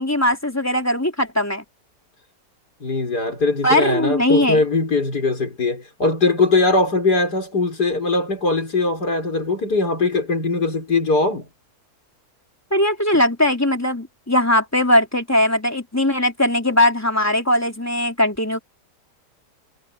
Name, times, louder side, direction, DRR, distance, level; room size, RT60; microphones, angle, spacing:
voice 1, 0.0-1.6 3.6-4.6 12.7-18.6, left 1 dB, 10° left, 3.2 m, -19 dB
voice 2, 2.8-11.5, left 3 dB, 70° left, 6.0 m, -20 dB
omnidirectional pair, 1.8 m